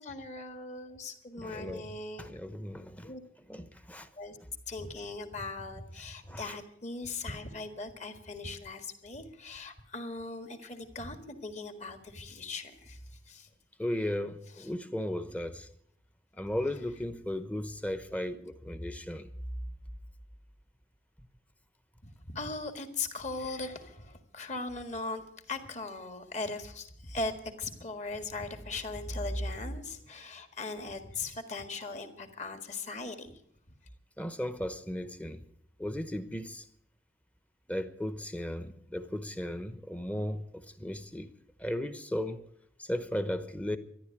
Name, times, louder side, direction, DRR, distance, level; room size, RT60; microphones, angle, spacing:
voice 1, 0.0-2.3 3.0-3.2 4.2-4.4 4.7-13.0 13.3-13.5 14.6-14.7 22.0-25.2 25.5-27.3 27.6-33.3, left 3 dB, 40° left, 1.7 m, -39 dB
voice 2, 1.4-3.1 3.5-4.1 6.3-6.6 13.8-15.7 16.4-19.3 34.2-35.4 35.8-36.6 37.7-41.3 41.6-42.4 42.8-43.8, left 1 dB, 10° left, 0.9 m, -36 dB
13.5 x 11.0 x 8.9 m
head